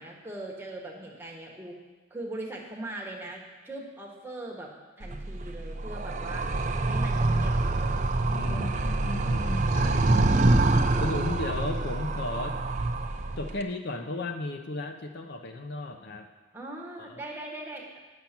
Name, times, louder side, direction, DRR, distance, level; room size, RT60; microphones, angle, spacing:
voice 1, 0.0-1.8 2.1-4.7 5.0-6.4 6.9-8.0 8.3-8.9 9.5-10.0 16.5-18.0, right 1 dB, 10° right, -1 dB, 1.3 m, -40 dB
Animal, 5.0-13.6, right 2 dB, 35° right, 0.5 m, -26 dB
voice 2, 8.3-10.4 11.0-12.6 13.4-16.3 17.0-17.1, left 2 dB, 50° left, 5 dB, 0.6 m, -35 dB
9.4 x 7.1 x 5.9 m, 1.3 s
head